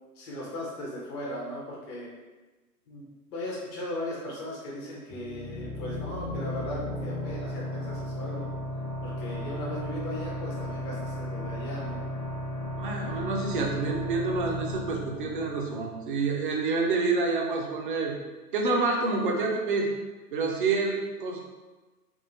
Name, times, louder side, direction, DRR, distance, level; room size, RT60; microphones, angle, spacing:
voice 1, 0.2-2.1 2.9-8.5 9.0-12.1, left 1 dB, 15° left, -5 dB, 0.5 m, -37 dB
sound 1, 5.1-16.5, left 1 dB, 80° right, 1.0 m, -35 dB
voice 2, 12.8-18.1 18.5-19.9 20.3-21.4, right 3 dB, 35° right, 1 dB, 0.4 m, -28 dB
3.6 x 2.5 x 2.6 m, 1.2 s
figure-of-eight pair, 120°, 48 cm